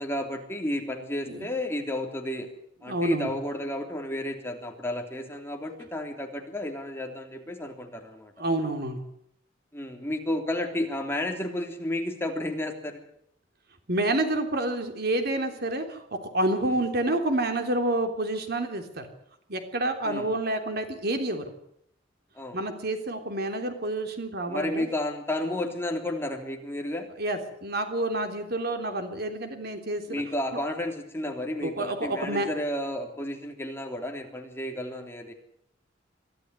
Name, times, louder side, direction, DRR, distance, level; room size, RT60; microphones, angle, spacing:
voice 1, 0.0-2.5 2.8-8.3 9.7-13.0 16.6-16.8 20.0-20.3 22.3-22.6 24.5-27.1 30.1-35.3, left 1 dB, 15° left, 3 dB, 3.3 m, -32 dB
voice 2, 2.9-3.3 8.4-9.0 13.9-19.1 19.5-21.5 22.5-24.9 27.2-30.2 31.6-32.5, right 1 dB, 60° right, 6 dB, 3.4 m, -28 dB
22.5 x 13.0 x 9.8 m, 0.74 s
head